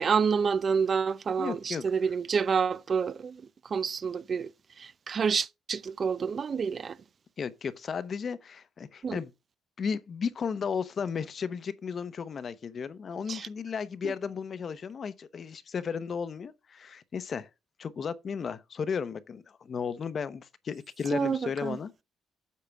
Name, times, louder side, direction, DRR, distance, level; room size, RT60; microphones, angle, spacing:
voice 1, 0.0-4.5 4.8-7.0 9.0-9.2 13.3-13.5 14.0-14.1 21.1-21.8, right 6 dB, 45° right, 0.5 m, -28 dB
voice 2, 1.4-1.8 7.4-9.3 9.8-17.5 17.8-22.0, left 6 dB, 50° left, 0.8 m, -34 dB
8.5 x 5.7 x 3.5 m
cardioid pair, 90°, 0 cm